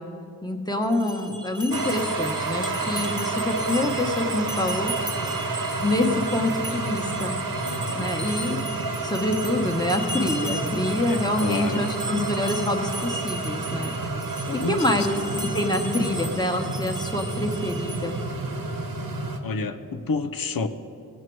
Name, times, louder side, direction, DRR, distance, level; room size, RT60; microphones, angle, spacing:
voice 1, 0.4-4.9 5.8-7.3 7.9-8.6 9.0-13.9 14.3-15.2 15.5-18.2, left 1 dB, 10° left, 3 dB, 1.2 m, -26 dB
sound 1, 0.8-18.3, right 1 dB, 10° right, 0.9 m, -37 dB
sound 2, 1.7-19.4, right 3 dB, 65° right, 1.1 m, -30 dB
voice 2, 7.6-8.1 11.1-11.9 14.5-15.1 19.4-20.7, left 4 dB, 65° left, 10 dB, 0.7 m, -30 dB
16.5 x 7.5 x 4.7 m, 2.7 s
cardioid pair, 55°, 37 cm